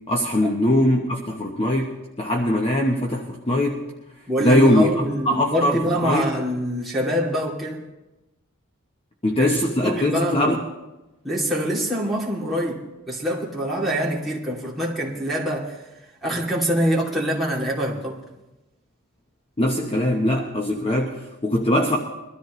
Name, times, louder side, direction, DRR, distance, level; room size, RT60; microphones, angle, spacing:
voice 1, 0.1-3.8 4.4-6.3 9.2-10.6 19.6-22.0, left 1 dB, 25° left, 1.0 m, -21 dB
voice 2, 4.3-7.8 9.4-9.5 9.8-10.6 11.2-15.8 16.2-18.2, equal, ahead, 2.6 m, -25 dB
22.0 x 13.0 x 3.1 m
head